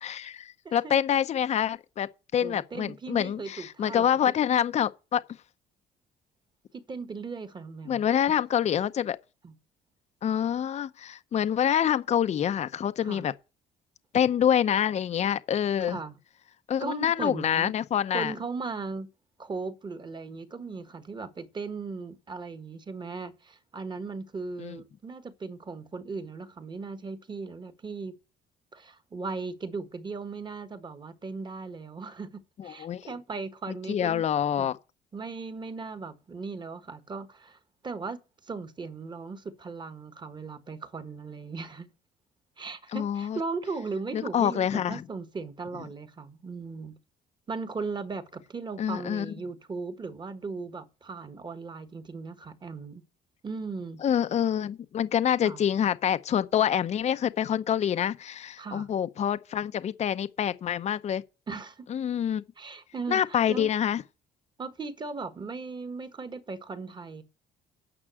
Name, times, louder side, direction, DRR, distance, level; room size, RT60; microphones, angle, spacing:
voice 1, 0.0-5.2 7.9-9.2 10.2-13.3 14.1-16.0 16.7-18.3 24.6-24.8 32.6-33.0 33.9-34.8 42.9-43.4 44.1-45.0 48.8-49.3 54.0-61.2 61.9-62.4 63.1-64.0, left 9 dB, 40° left, 0.6 m, -26 dB
voice 2, 0.6-1.0 2.4-4.1 6.7-8.1 9.4-9.5 13.0-13.2 15.8-16.1 16.8-17.7 18.1-19.1 19.4-28.1 28.7-34.3 34.6-34.7 35.1-37.6 37.8-41.9 42.6-46.9 47.5-53.0 53.4-54.0 55.4-55.6 58.6-58.9 61.5-61.9 62.6-63.7 64.6-67.2, right 4 dB, 25° right, 1.5 m, -37 dB
9.8 x 5.9 x 7.6 m
cardioid pair, 110°, 17 cm